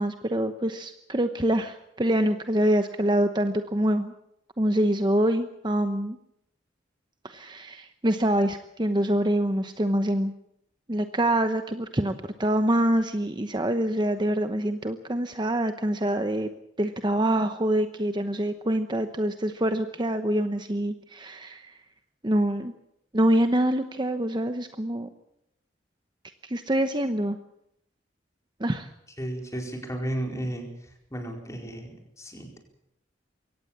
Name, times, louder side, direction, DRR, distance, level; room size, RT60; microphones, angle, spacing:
voice 1, 0.0-4.1 4.6-6.2 7.2-10.3 10.9-12.1 12.4-16.5 16.8-21.7 22.2-22.7 23.1-25.1 26.4-27.4 28.6-28.9, right 1 dB, 25° right, 8 dB, 0.9 m, -25 dB
voice 2, 29.2-30.7 31.1-32.6, right 1 dB, 15° left, 2 dB, 4.5 m, -33 dB
23.5 x 17.5 x 7.3 m, 0.77 s
head